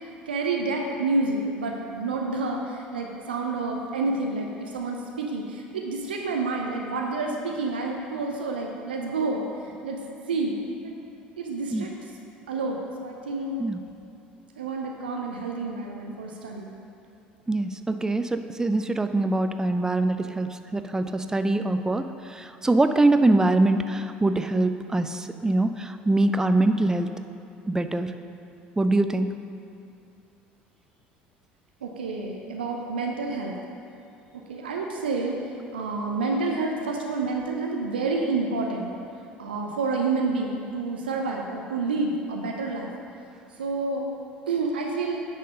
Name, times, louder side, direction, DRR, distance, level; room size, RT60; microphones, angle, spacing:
voice 1, 0.0-10.0 10.3-11.1 11.4-11.9 12.5-13.6 14.6-16.7 31.8-33.6 34.3-35.4 35.7-38.9 39.4-42.9 43.6-44.1 44.5-45.2, right 3 dB, 75° right, 1 dB, 0.6 m, -29 dB
voice 2, 17.5-22.0 22.3-27.1 27.7-28.1 28.8-29.3, right 2 dB, 10° right, 9 dB, 0.4 m, -23 dB
9.0 x 4.3 x 5.2 m, 2.7 s
figure-of-eight pair, 65°, 5 cm